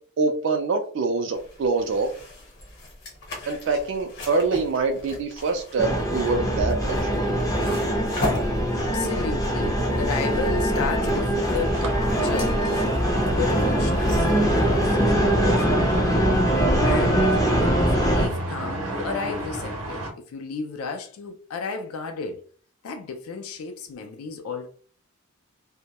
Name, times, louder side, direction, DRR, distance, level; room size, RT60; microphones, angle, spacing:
voice 1, 0.2-2.1 3.5-7.2, right 4 dB, 60° right, 0.3 m, -25 dB
sound 1, 1.3-15.6, left 2 dB, 50° left, 0.8 m, -38 dB
sound 2, 5.8-18.3, equal, 15° left, 0.4 m, -22 dB
voice 2, 8.7-12.8 13.3-16.0 16.8-17.5 18.0-22.4 22.8-24.7, left 5 dB, 85° left, 0.4 m, -33 dB
sound 3, 11.7-20.1, right 1 dB, 80° right, 0.7 m, -33 dB
2.2 x 2.0 x 2.8 m
head